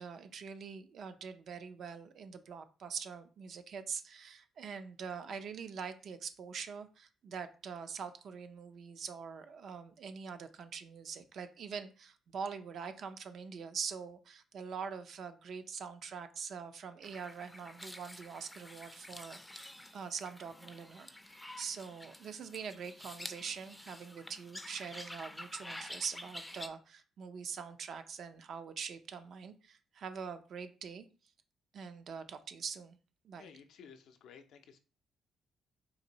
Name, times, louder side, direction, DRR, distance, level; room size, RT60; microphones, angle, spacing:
voice 1, 0.0-31.1 31.7-33.0 33.2-33.5, right 6 dB, 65° right, 9 dB, 0.4 m, -44 dB
sound 1, 17.0-26.7, left 1 dB, 10° left, 0.4 m, -49 dB
voice 2, 33.4-34.8, left 6 dB, 75° left, 7 dB, 0.5 m, -55 dB
4.0 x 2.6 x 2.8 m, 0.35 s
cardioid pair, 90°, 0 cm